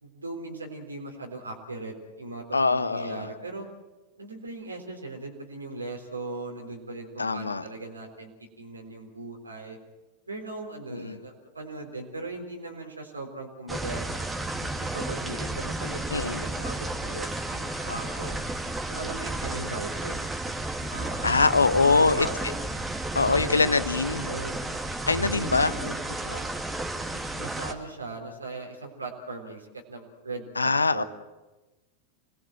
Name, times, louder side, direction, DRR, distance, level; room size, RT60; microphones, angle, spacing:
voice 1, 0.0-3.7 4.2-9.8 10.3-14.0 14.6-18.4 18.9-20.3 20.9-21.4 21.8-22.6 23.2-23.7 24.1-24.6 25.2-26.5 27.1-31.1, right 3 dB, 80° right, 2 dB, 3.7 m, -38 dB
voice 2, 2.5-3.3 7.2-7.6 10.9-11.2 16.1-16.4 21.2-22.3 23.1-24.3 25.1-25.7 30.6-31.0, left 4 dB, 80° left, 15 dB, 1.0 m, -23 dB
sound 1, 13.7-27.7, right 2 dB, 10° right, 2.4 m, -32 dB
27.0 x 20.0 x 7.7 m, 1.1 s
figure-of-eight pair, 90°, 0 cm